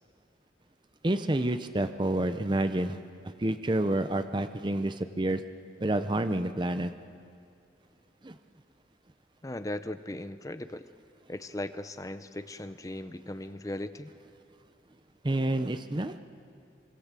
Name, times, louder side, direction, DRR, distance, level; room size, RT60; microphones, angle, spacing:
voice 1, 1.0-3.0 3.4-5.4 5.8-6.9 8.2-8.4 15.2-16.2, right 1 dB, 25° right, 10 dB, 0.6 m, -28 dB
voice 2, 9.4-10.8 11.3-14.1, left 1 dB, 20° left, 11 dB, 0.6 m, -38 dB
25.0 x 23.5 x 7.5 m, 2.5 s
head